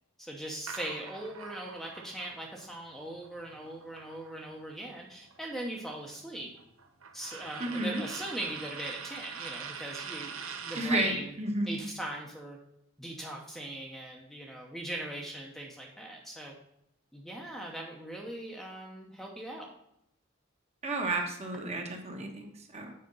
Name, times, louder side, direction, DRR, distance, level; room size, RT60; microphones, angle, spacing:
voice 1, 0.2-6.5 7.1-11.3 11.7-12.6 13.0-16.5 17.1-19.7, right 1 dB, ahead, -1 dB, 0.9 m, -40 dB
sound 1, 0.7-4.7 5.0-11.0, right 6 dB, 85° right, 1.0 m, -44 dB
voice 2, 7.6-8.0 10.7-11.8 20.8-22.9, right 2 dB, 30° right, 3 dB, 1.2 m, -32 dB
7.7 x 5.2 x 5.4 m, 0.78 s
head